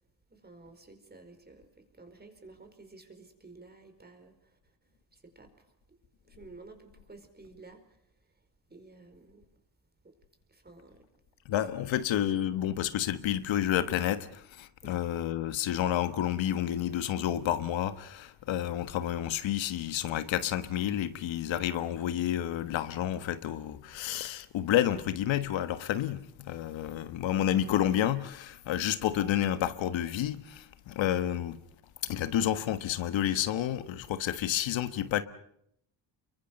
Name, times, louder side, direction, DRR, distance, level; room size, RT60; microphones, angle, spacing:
voice 1, 0.3-4.8 5.1-6.0 6.3-8.0 8.3-8.4 8.7-9.5 10.0-10.2 10.5-11.1 14.8-15.0 27.0-27.1, right 3 dB, 20° right, 4.8 m, -53 dB
voice 2, 11.4-31.6 32.0-35.2, left 11 dB, 90° left, 1.4 m, -30 dB
29.5 x 23.5 x 5.4 m
cardioid pair, 105°, 44 cm